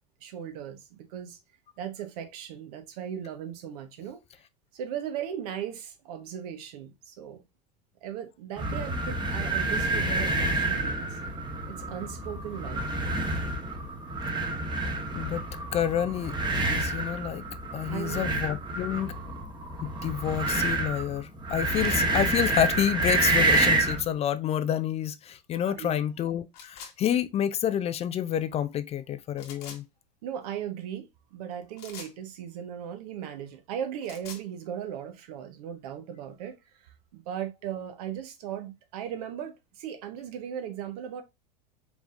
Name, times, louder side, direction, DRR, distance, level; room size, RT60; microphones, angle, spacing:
voice 1, 0.2-1.4 1.8-4.2 4.7-7.4 8.0-11.2 11.7-12.8 17.9-18.3 25.7-26.0 30.2-36.6 36.8-41.2, right 9 dB, 65° right, 1.2 m, -37 dB
sound 1, 8.6-24.1, right 2 dB, 20° right, 1.2 m, -28 dB
voice 2, 15.1-15.5 15.7-17.4 17.7-19.1 19.8-29.8, left 10 dB, 30° left, 0.4 m, -29 dB
sound 2, 26.5-26.9 29.4-29.8 31.8-32.1 33.8-34.5, left 6 dB, 65° left, 1.6 m, -44 dB
5.1 x 3.5 x 2.6 m
hypercardioid pair, 85°, 21 cm